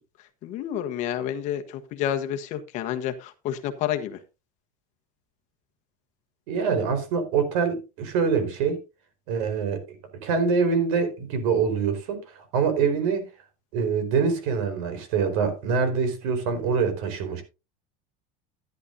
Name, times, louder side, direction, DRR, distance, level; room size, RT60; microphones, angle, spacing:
voice 1, 0.4-1.6 1.9-4.2, left 10 dB, 40° left, 1.2 m, -29 dB
voice 2, 6.5-8.8 9.3-9.8 10.2-13.3 13.7-17.4, right 5 dB, 70° right, 4.5 m, -25 dB
14.0 x 10.5 x 2.7 m
cardioid pair, 170°, 18 cm